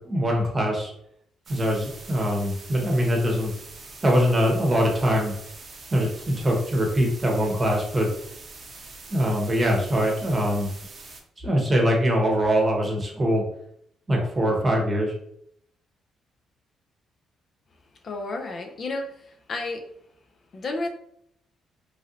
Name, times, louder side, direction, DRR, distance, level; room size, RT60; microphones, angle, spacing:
voice 1, 0.0-0.9 1.5-3.5 4.0-5.3 5.9-8.1 9.1-10.7 11.4-13.4 14.1-15.1, equal, 25° right, 0 dB, 0.9 m, -23 dB
sound 1, 1.5-11.2, right 3 dB, 45° right, 0.6 m, -44 dB
voice 2, 18.0-19.8 20.5-20.9, left 2 dB, 50° left, 4 dB, 0.5 m, -31 dB
3.1 x 2.5 x 2.8 m, 0.70 s
cardioid pair, 90°, 0 cm